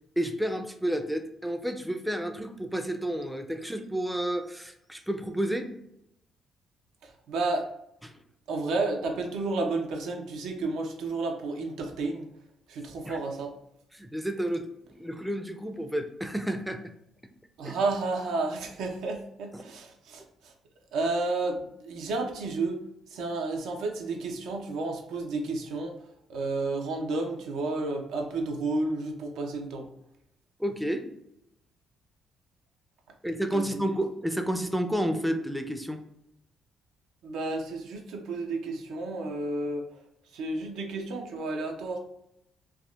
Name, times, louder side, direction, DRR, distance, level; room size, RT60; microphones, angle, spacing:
voice 1, 0.2-5.7 8.0-8.1 13.0-13.2 13.9-14.7 15.0-16.8 17.6-17.8 19.5-19.6 30.6-31.1 33.2-36.0, right 1 dB, ahead, 6 dB, 0.3 m, -30 dB
voice 2, 7.0-7.7 8.5-12.3 12.7-13.5 17.6-20.5 20.9-22.8 23.1-25.9 26.3-29.9 33.5-33.8 37.2-39.9 40.3-42.0, right 3 dB, 85° right, 3 dB, 0.5 m, -31 dB
3.4 x 2.1 x 2.3 m, 0.78 s
cardioid pair, 90°, 0 cm